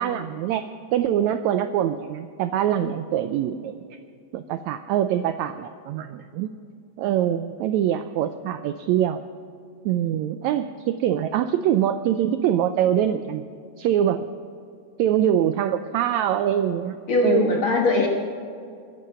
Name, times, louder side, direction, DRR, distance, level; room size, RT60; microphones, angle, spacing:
voice 1, 0.0-3.8 4.3-6.5 7.0-9.2 9.8-13.5 13.8-14.3 15.0-17.0 17.2-17.6, right 10 dB, 85° right, 10 dB, 1.6 m, -24 dB
voice 2, 17.1-18.1, left 3 dB, 55° left, 1 dB, 1.6 m, -20 dB
22.0 x 10.5 x 5.6 m, 2.3 s
omnidirectional pair, 3.8 m